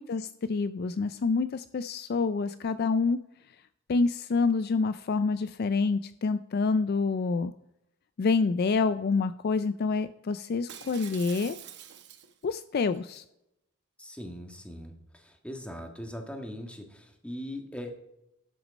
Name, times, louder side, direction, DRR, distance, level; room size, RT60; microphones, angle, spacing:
voice 1, 0.0-3.2 3.9-7.5 8.2-11.6 12.4-13.2, left 4 dB, 45° left, 12 dB, 0.4 m, -27 dB
Shatter, 10.7-12.5 12.9-13.2, right 9 dB, 55° right, 1.0 m, -45 dB
voice 2, 14.0-17.9, equal, 5° left, 3 dB, 1.6 m, -40 dB
12.5 x 6.1 x 5.2 m, 0.85 s
head